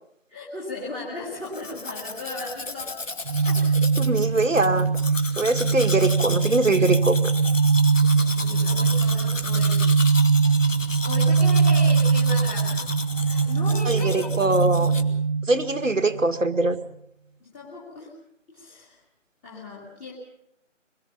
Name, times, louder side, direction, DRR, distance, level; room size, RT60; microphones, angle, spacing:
voice 1, 0.3-3.0 3.4-3.6 7.9-9.9 11.0-12.8 13.2-15.1 17.4-18.1 18.5-19.0 19.4-20.2, left 2 dB, 10° left, -7 dB, 2.3 m, -37 dB
Domestic sounds home sounds, 1.4-15.0, left 3 dB, 85° left, 2.6 m, -34 dB
sound 1, 3.3-16.3, right 5 dB, 70° right, 1.0 m, -22 dB
voice 2, 4.0-4.9 5.4-7.3 13.9-14.9 15.5-16.8, right 2 dB, 90° right, 9 dB, 2.2 m, -22 dB
26.5 x 22.0 x 5.4 m, 0.75 s
figure-of-eight pair, 165°, 37 cm